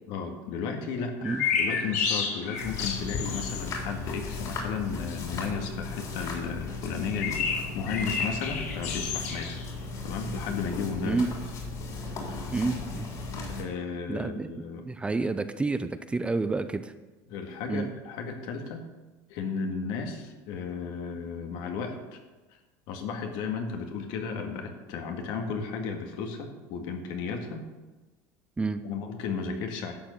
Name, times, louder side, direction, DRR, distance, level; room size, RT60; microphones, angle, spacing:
voice 1, 0.1-1.3 1.6-9.6 10.0-11.2 12.0-12.5 13.5-14.8 17.3-18.9 19.3-22.2 22.9-27.7 28.8-29.9, left 5 dB, 65° left, 4 dB, 1.9 m, -34 dB
sound 1, 1.2-4.0 7.1-9.8 10.1-10.2, left 6 dB, 85° left, 1.8 m, -30 dB
sound 2, 2.5-13.6, left 3 dB, 50° left, 3.6 m, -36 dB
voice 2, 12.5-13.1 14.1-16.9 17.7-17.9 28.6-28.8, right 3 dB, 15° right, 11 dB, 0.6 m, -29 dB
12.0 x 6.9 x 6.4 m, 1.2 s
supercardioid pair, 105°, 8 cm